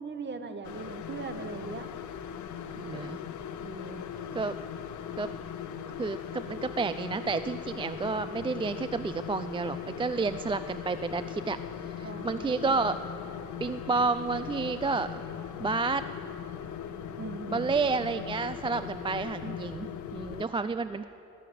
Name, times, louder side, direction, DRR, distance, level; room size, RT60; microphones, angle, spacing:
voice 1, 0.0-1.9 3.6-4.0 12.0-12.8 17.2-17.8, right 4 dB, 35° right, 8 dB, 1.3 m, -40 dB
sound 1, 0.6-20.4, left 8 dB, 75° left, 0.9 m, -39 dB
voice 2, 2.8-3.2 4.3-4.5 5.2-5.3 6.0-11.6 12.0-13.0 13.6-15.2 15.6-16.1 17.5-21.1, right 4 dB, 20° right, 12 dB, 0.3 m, -30 dB
18.0 x 7.7 x 9.2 m, 3.0 s
cardioid pair, 90°, 30 cm